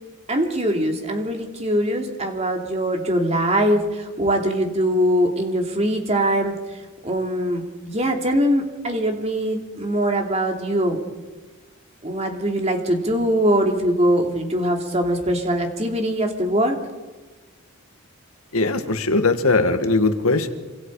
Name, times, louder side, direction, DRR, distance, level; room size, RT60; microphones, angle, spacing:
voice 1, 0.3-6.6 7.0-11.0 12.0-16.8, equal, 30° right, 3 dB, 2.9 m, -22 dB
voice 2, 18.5-20.5, left 3 dB, 75° left, 7 dB, 1.9 m, -20 dB
27.0 x 26.0 x 4.9 m, 1.2 s
head